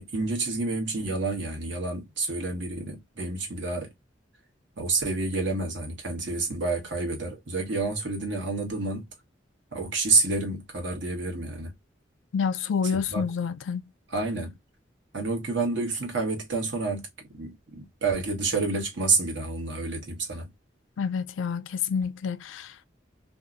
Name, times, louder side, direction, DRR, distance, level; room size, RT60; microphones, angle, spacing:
voice 1, 0.0-3.9 4.8-9.1 9.7-11.7 13.1-13.2 14.1-14.6 15.1-20.5, right 3 dB, 75° right, 1.3 m, -29 dB
voice 2, 12.3-13.9 21.0-22.8, left 6 dB, 85° left, 0.4 m, -28 dB
2.7 x 2.3 x 2.5 m
head